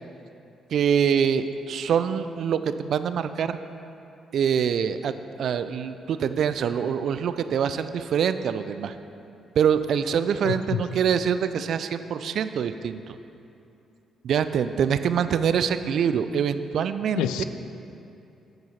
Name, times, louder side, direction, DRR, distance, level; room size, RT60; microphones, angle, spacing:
voice 1, 0.7-3.6 4.3-5.1 5.4-8.9 9.6-13.2 14.2-17.4, right 7 dB, 65° right, 11 dB, 0.3 m, -25 dB
voice 2, 10.5-10.8 17.1-17.4, left 10 dB, 80° left, 11 dB, 0.3 m, -27 dB
9.3 x 4.6 x 5.7 m, 2.7 s
hypercardioid pair, 50°, 0 cm